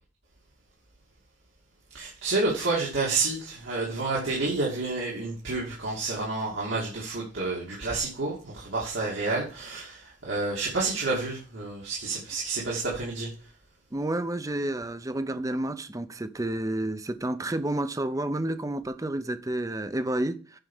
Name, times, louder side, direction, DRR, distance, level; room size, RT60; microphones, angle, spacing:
voice 1, 1.9-13.3, right 3 dB, 85° right, 2.5 m, -29 dB
voice 2, 13.9-20.6, right 1 dB, 20° right, 0.6 m, -30 dB
8.9 x 4.7 x 5.5 m
head